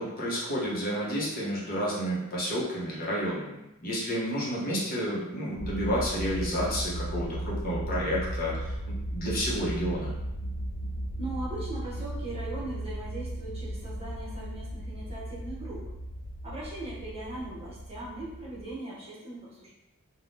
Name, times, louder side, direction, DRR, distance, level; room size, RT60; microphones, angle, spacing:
voice 1, 0.0-10.1, equal, 45° left, -6 dB, 0.8 m, -31 dB
sound 1, 5.6-18.7, right 1 dB, 80° left, 0.4 m, -36 dB
voice 2, 11.2-15.9 16.4-19.7, right 2 dB, 30° right, -7 dB, 0.9 m, -39 dB
3.4 x 2.2 x 2.6 m, 0.91 s
head